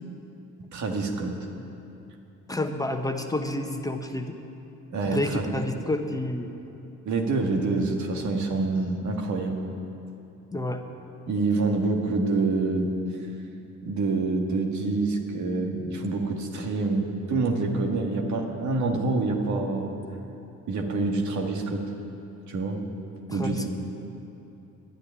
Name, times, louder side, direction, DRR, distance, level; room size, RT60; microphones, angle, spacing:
voice 1, 0.7-1.3 4.9-5.5 7.1-9.6 11.3-12.9 13.8-20.0 20.7-21.9 22.5-22.8 23.3-23.7, right 3 dB, 70° right, 2 dB, 1.9 m, -26 dB
voice 2, 2.5-4.3 5.1-6.5 10.5-10.8 23.3-23.7, left 1 dB, 10° left, 4 dB, 1.0 m, -29 dB
11.5 x 9.8 x 9.8 m, 2.9 s
cardioid pair, 90°, 30 cm